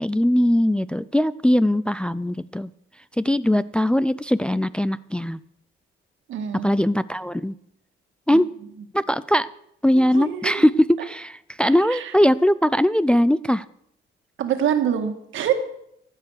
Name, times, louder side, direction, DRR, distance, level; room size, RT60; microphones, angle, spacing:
voice 1, 0.0-2.7 3.2-5.4 6.6-7.5 8.3-8.5 8.9-9.5 9.8-13.6, equal, 5° left, 15 dB, 0.4 m, -20 dB
voice 2, 6.3-6.7 8.3-8.4 10.1-10.7 11.6-12.1 14.4-15.5, right 9 dB, 80° right, 6 dB, 2.0 m, -25 dB
15.0 x 8.3 x 6.5 m, 0.73 s
cardioid pair, 90°, 20 cm